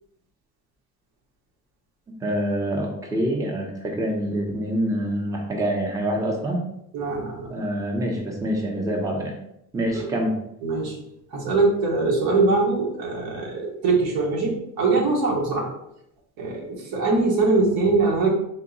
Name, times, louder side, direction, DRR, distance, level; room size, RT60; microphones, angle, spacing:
voice 1, 2.2-6.6 7.5-9.4 9.7-10.3, right 1 dB, 10° right, -1 dB, 0.7 m, -26 dB
voice 2, 6.9-7.5 9.9-10.0 10.6-11.0 11.3-15.7 16.4-18.3, right 3 dB, 75° right, -2 dB, 1.2 m, -22 dB
3.6 x 2.2 x 4.0 m, 0.78 s
cardioid pair, 105°, 37 cm